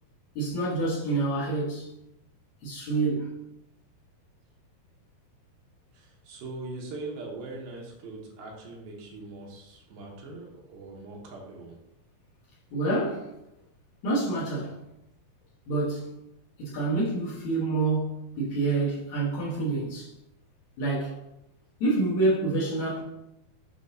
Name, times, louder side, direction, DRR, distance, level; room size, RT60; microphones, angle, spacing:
voice 1, 0.4-1.9 2.6-3.3 12.7-13.3 14.0-14.8 15.7-16.1 16.6-20.1 20.8-21.2 21.8-23.0, right 2 dB, 60° left, 2.4 m, -27 dB
voice 2, 5.9-11.8, right 2 dB, 80° right, 2.9 m, -41 dB
8.7 x 4.0 x 2.7 m
omnidirectional pair, 4.3 m